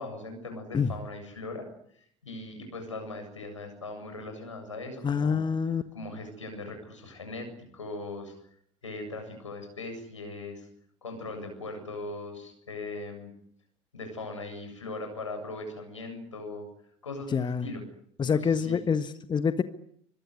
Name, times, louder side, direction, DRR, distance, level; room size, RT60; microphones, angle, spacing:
voice 1, 0.0-1.7 2.2-5.4 5.9-7.5 7.7-8.3 8.8-10.7 11.0-13.3 13.9-16.6 17.0-17.8 18.2-18.8, left 2 dB, 85° left, 5 dB, 7.8 m, -39 dB
voice 2, 5.0-5.8 17.3-17.7 18.2-19.6, left 6 dB, 30° left, 11 dB, 1.5 m, -26 dB
25.0 x 22.0 x 9.9 m, 0.68 s
figure-of-eight pair, 65°, 15 cm